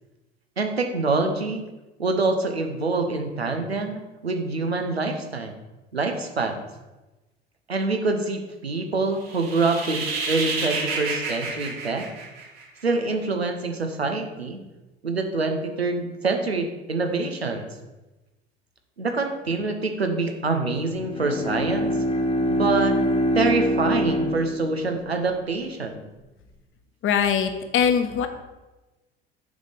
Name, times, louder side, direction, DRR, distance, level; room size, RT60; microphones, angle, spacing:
voice 1, 0.6-1.6 2.0-5.5 5.9-6.6 7.7-12.1 12.8-14.6 15.0-17.7 19.0-22.0 22.5-23.0 23.3-26.1, right 3 dB, 90° right, 5 dB, 1.0 m, -25 dB
sound 1, 9.2-12.8, right 4 dB, 70° right, 2.9 m, -30 dB
Bowed string instrument, 20.9-25.3, equal, 20° left, 1.4 m, -24 dB
voice 2, 27.0-28.3, left 7 dB, 40° left, 7 dB, 1.2 m, -22 dB
7.3 x 5.5 x 5.2 m, 1.1 s
figure-of-eight pair, 70°, 30 cm